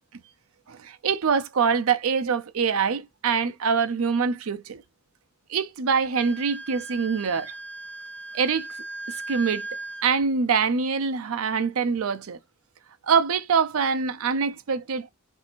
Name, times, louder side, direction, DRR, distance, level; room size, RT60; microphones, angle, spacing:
voice 1, 0.7-4.8 5.5-7.5 8.3-8.7 9.3-9.7 10.0-12.4 13.1-15.1, right 6 dB, 80° right, 0.5 m, -24 dB
Wind instrument woodwind instrument, 6.1-10.1, right 2 dB, 5° left, 0.4 m, -37 dB
4.0 x 2.7 x 4.3 m
head